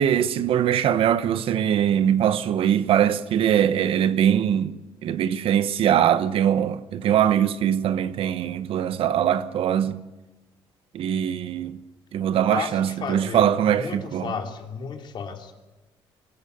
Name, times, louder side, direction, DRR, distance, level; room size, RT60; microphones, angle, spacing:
voice 1, 0.0-4.8 5.0-10.0 10.9-11.8 12.1-14.3, right 9 dB, 70° right, 1.1 m, -22 dB
voice 2, 12.5-15.5, left 6 dB, 55° left, 3.1 m, -33 dB
23.5 x 15.0 x 8.1 m
cardioid pair, 95°, 10 cm